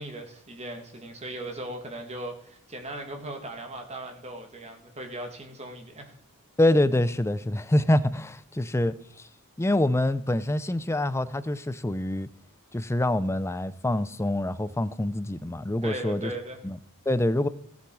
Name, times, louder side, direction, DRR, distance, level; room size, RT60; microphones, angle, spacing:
voice 1, 0.0-6.1 15.8-16.7, right 1 dB, 30° right, 2.0 m, -38 dB
voice 2, 6.6-9.3 9.6-12.3 12.7-16.3 16.6-16.8 17.1-17.5, left 1 dB, 10° left, 0.5 m, -25 dB
16.5 x 7.1 x 4.7 m
head